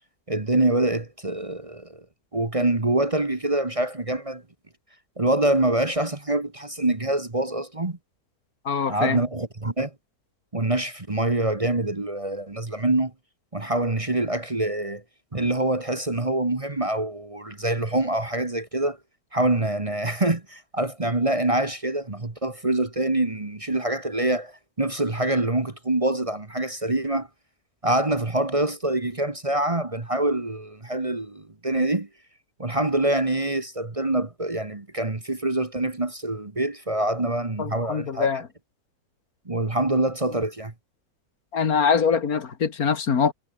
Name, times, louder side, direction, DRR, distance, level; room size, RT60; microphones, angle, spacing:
voice 1, 0.3-2.0 2.3-4.4 5.2-8.0 8.9-9.9 10.5-13.1 13.5-15.0 15.3-19.0 19.3-24.5 24.8-27.3 27.8-32.1 32.6-38.3 39.5-40.7, right 2 dB, 20° right, 1.5 m, -25 dB
voice 2, 8.7-9.2 37.6-38.5 41.5-43.3, left 6 dB, 70° left, 2.2 m, -23 dB
omnidirectional pair, 1.6 m